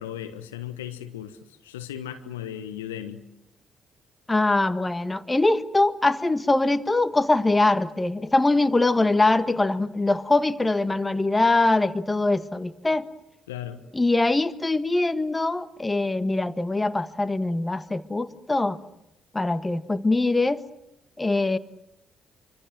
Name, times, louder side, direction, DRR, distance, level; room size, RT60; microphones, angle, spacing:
voice 1, 0.0-1.4 1.6-3.2 13.5-13.9, left 10 dB, 85° left, 10 dB, 1.3 m, -36 dB
voice 2, 4.3-13.1 13.9-18.8 19.3-20.6 21.2-21.6, left 2 dB, 20° left, 13 dB, 1.6 m, -23 dB
27.0 x 25.0 x 7.7 m, 0.79 s
hypercardioid pair, 45°, 0 cm